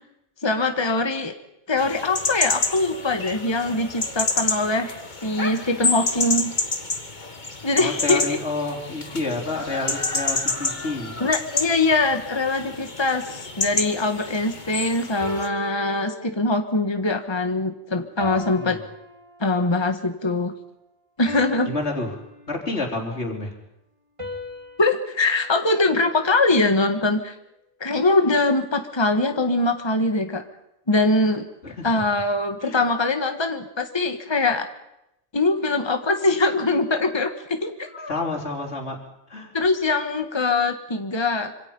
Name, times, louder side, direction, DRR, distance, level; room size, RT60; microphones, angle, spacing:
voice 1, 0.4-1.3 1.7-6.5 7.6-8.4 11.2-18.8 19.4-20.5 21.2-21.7 24.8-27.3 27.8-30.4 30.9-31.4 31.8-34.7 35.3-38.1 39.5-41.7, left 2 dB, 25° left, 6 dB, 1.6 m, -22 dB
sound 1, 1.8-15.5, left 3 dB, 45° left, 1.9 m, -29 dB
voice 2, 7.7-11.2 18.4-18.7 21.6-22.2 22.5-23.6 31.6-31.9 32.6-32.8 38.1-39.0 39.3-39.5, left 2 dB, 85° left, 0 dB, 4.0 m, -29 dB
sound 2, 13.7-14.1 15.2-16.8 18.2-19.8 21.3-22.9 24.2-26.6, equal, 30° right, 3.2 m, -39 dB
26.5 x 26.0 x 5.5 m, 0.86 s
omnidirectional pair, 1.1 m